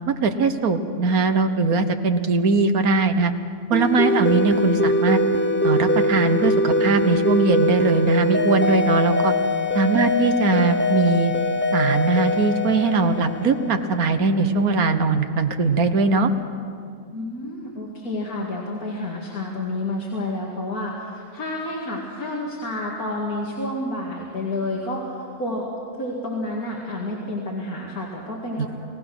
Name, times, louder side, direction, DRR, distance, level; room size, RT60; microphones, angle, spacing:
voice 1, 0.1-3.3 3.7-5.2 5.6-9.3 9.7-11.3 11.7-16.3 28.6-28.7, right 4 dB, 80° right, 8 dB, 1.7 m, -20 dB
sound 1, 3.7-14.0, left 1 dB, 10° left, 0.8 m, -22 dB
voice 2, 17.1-25.7 26.0-28.7, left 1 dB, 85° left, -3 dB, 2.8 m, -30 dB
29.5 x 18.0 x 6.2 m, 2.3 s
omnidirectional pair, 1.5 m